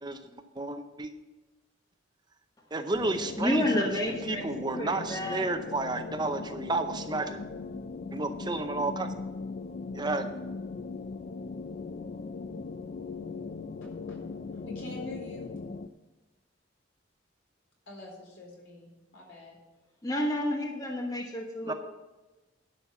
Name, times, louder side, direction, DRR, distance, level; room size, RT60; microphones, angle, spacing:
voice 1, 0.0-1.1 2.7-3.9 4.3-7.4 8.1-9.1 9.9-10.3 21.7-21.8, right 2 dB, 20° right, 7 dB, 0.6 m, -32 dB
sound 1, 2.9-15.9, left 4 dB, 45° left, 0.4 m, -39 dB
voice 2, 3.4-4.4 4.8-5.6 20.0-21.7, left 1 dB, 20° left, 1 dB, 1.1 m, -30 dB
voice 3, 14.5-15.5 17.9-19.6, left 2 dB, 80° left, -1 dB, 4.1 m, -45 dB
11.0 x 5.8 x 7.0 m, 1.1 s
head